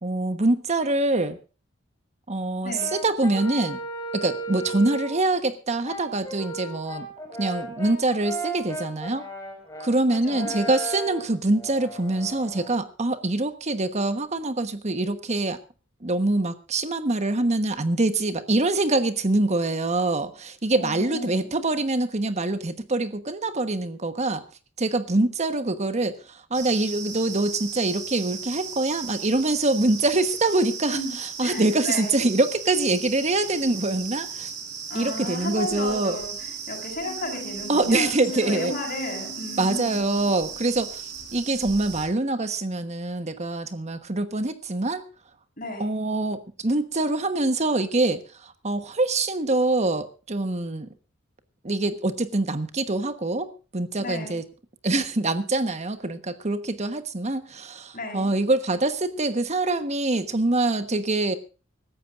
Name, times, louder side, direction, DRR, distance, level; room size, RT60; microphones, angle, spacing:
voice 1, 0.0-1.4 2.3-3.8 4.1-7.1 7.4-9.3 9.8-15.6 16.0-24.4 24.8-34.5 34.9-36.2 37.7-38.7 39.6-45.1 45.8-50.9 51.6-54.4 54.8-61.3, right 2 dB, 35° right, 1.2 m, -25 dB
voice 2, 2.6-2.9 10.2-10.5 20.7-21.5 30.9-31.1 31.4-32.2 34.9-40.2 45.6-45.9 54.0-54.4 57.9-58.3, left 2 dB, 45° left, 7.2 m, -34 dB
Brass instrument, 2.7-5.3 5.8-12.8, right 1 dB, 15° left, 5.2 m, -35 dB
sound 1, 26.5-42.0, right 6 dB, 60° right, 4.8 m, -37 dB
sound 2, 37.0-42.0, left 1 dB, 70° left, 0.9 m, -42 dB
25.5 x 14.0 x 2.5 m
head